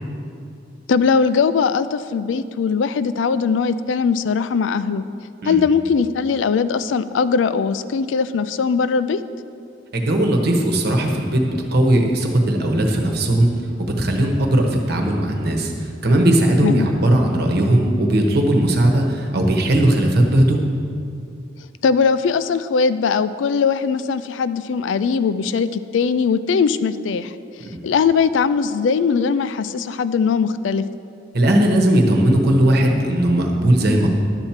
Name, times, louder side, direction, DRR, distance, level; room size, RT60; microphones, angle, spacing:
voice 1, 0.9-5.0 5.4-9.2 16.6-16.9 21.8-27.3 27.8-30.8, left 5 dB, 90° left, 14 dB, 0.4 m, -20 dB
voice 2, 9.9-13.5 13.8-20.6 27.6-27.8 31.3-34.1, right 1 dB, 60° right, 2 dB, 1.1 m, -18 dB
10.5 x 4.5 x 7.3 m, 2.4 s
head